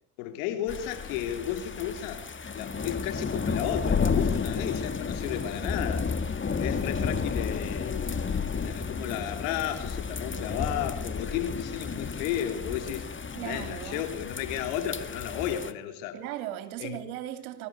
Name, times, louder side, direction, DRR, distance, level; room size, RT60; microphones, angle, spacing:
voice 1, 0.2-2.2 2.5-6.1 6.6-8.2 8.6-13.1 13.4-16.1 16.8-17.0, left 10 dB, 90° left, 3.4 m, -33 dB
sound 1, 0.7-15.7, left 5 dB, 30° left, 1.9 m, -32 dB
voice 2, 13.3-14.1 16.1-17.7, right 12 dB, 90° right, 2.7 m, -37 dB
23.0 x 13.5 x 9.4 m
supercardioid pair, 65°, 41 cm